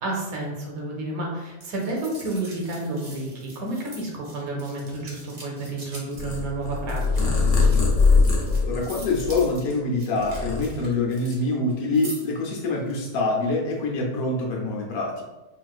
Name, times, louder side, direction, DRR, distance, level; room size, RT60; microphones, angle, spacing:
voice 1, 0.0-7.4, right 2 dB, 75° right, -1 dB, 1.2 m, -31 dB
sound 1, 1.6-11.4 11.7-12.4 12.8-12.9, right 2 dB, 50° right, 1.0 m, -44 dB
Purr, 6.1-9.7 10.1-11.2, left 4 dB, 55° left, 0.9 m, -22 dB
voice 2, 8.7-15.2, left 2 dB, 75° left, -1 dB, 1.2 m, -25 dB
4.1 x 2.4 x 2.3 m, 1.1 s
omnidirectional pair, 1.6 m